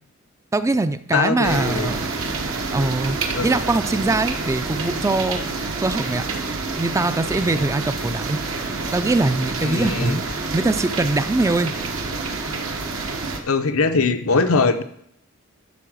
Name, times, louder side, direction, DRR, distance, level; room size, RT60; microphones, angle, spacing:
voice 1, 0.5-2.0 2.7-3.2 3.4-5.4 5.8-6.2 6.8-8.4 8.9-10.2 10.5-11.7, right 2 dB, 15° right, 11 dB, 0.3 m, -22 dB
voice 2, 1.1-2.0 3.3-3.6 9.6-10.2 13.4-14.8, left 4 dB, 85° left, 7 dB, 0.8 m, -21 dB
sound 1, 1.4-13.4, right 3 dB, 75° right, 1.1 m, -28 dB
11.0 x 4.0 x 6.3 m, 0.71 s
head